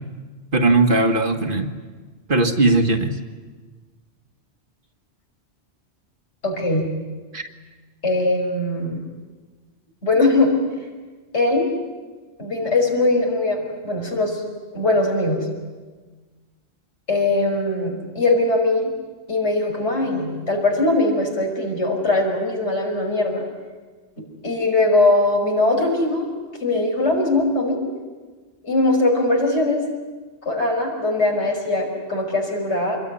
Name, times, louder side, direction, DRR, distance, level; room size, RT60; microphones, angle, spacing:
voice 1, 0.5-1.7 2.3-3.2 7.3-7.5, right 2 dB, 50° right, 5 dB, 1.9 m, -18 dB
voice 2, 6.4-6.9 8.0-9.0 10.0-10.5 11.3-11.7 12.4-14.4 14.7-15.5 17.1-18.9 19.3-23.4 24.4-26.3 26.6-27.8 28.6-29.8 30.5-33.0, left 2 dB, 85° left, 1 dB, 5.9 m, -20 dB
26.5 x 22.0 x 9.9 m, 1.4 s
omnidirectional pair, 1.1 m